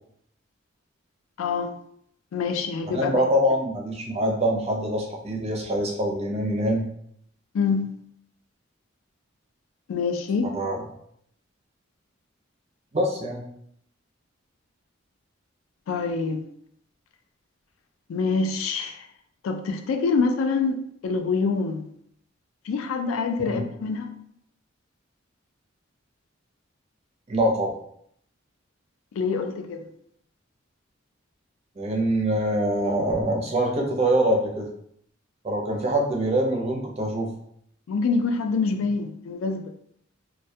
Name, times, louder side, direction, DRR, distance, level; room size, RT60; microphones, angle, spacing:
voice 1, 1.4-1.7 2.3-3.2 7.5-7.9 9.9-10.5 15.9-16.4 18.1-19.0 19.4-21.9 22.7-24.1 29.2-29.8 37.9-39.6, left 4 dB, 85° left, 6 dB, 0.3 m, -25 dB
voice 2, 2.9-6.9 10.5-10.8 12.9-13.4 23.4-23.6 27.3-27.8 31.8-34.7 35.4-37.3, right 1 dB, 30° right, 0 dB, 0.4 m, -24 dB
2.2 x 2.1 x 2.6 m, 0.69 s
head